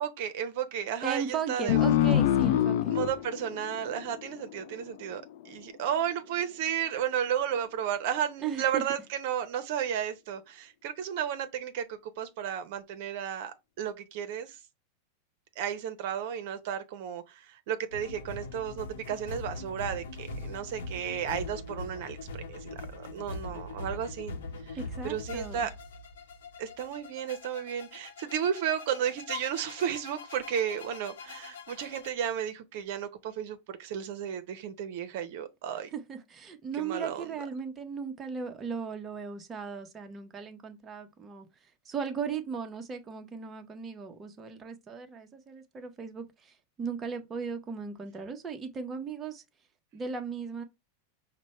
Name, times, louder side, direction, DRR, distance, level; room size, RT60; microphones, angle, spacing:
voice 1, 0.0-1.8 2.9-14.6 15.6-24.3 24.7-24.8 25.0-25.7 26.6-35.9 36.8-37.3, right 9 dB, 65° right, 0.7 m, -33 dB
voice 2, 1.0-3.0 8.4-8.8 24.7-25.7 35.9-41.5 41.9-49.4 49.9-50.6, right 6 dB, 20° right, 0.8 m, -37 dB
sound 1, 1.7-4.8, left 12 dB, 65° left, 0.3 m, -26 dB
sound 2, 17.9-32.1, left 3 dB, 85° left, 0.9 m, -42 dB
5.1 x 2.2 x 4.2 m
supercardioid pair, 125°, 0 cm